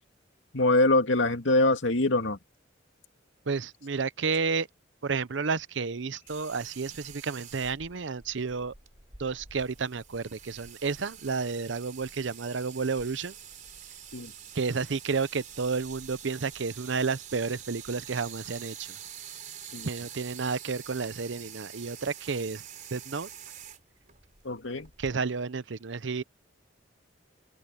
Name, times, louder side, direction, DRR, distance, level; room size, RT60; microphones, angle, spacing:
voice 1, 0.5-2.4 14.1-14.3 19.7-19.9 24.4-24.9, left 2 dB, 85° left, 2.3 m, -24 dB
voice 2, 3.5-4.7 5.0-8.7 9.2-13.3 14.5-19.0 19.8-22.6 22.9-23.3 25.0-26.2, right 4 dB, 70° right, 0.7 m, -31 dB
sound 1, 6.3-25.2, right 9 dB, 45° right, 4.0 m, -46 dB
open air
head